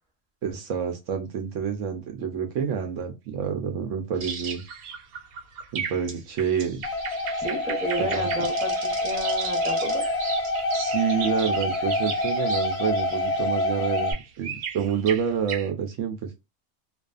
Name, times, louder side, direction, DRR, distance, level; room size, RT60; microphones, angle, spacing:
voice 1, 0.4-4.6 5.7-6.8 8.0-8.3 10.7-16.3, right 7 dB, 70° right, 5 dB, 0.9 m, -28 dB
sound 1, 4.2-15.7, right 6 dB, 90° right, 1.2 m, -36 dB
sound 2, 6.8-14.1, left 2 dB, 65° left, 0.8 m, -27 dB
voice 2, 7.4-10.0, right 2 dB, 5° right, 0 dB, 0.8 m, -32 dB
2.4 x 2.3 x 2.3 m, 0.25 s
omnidirectional pair, 1.4 m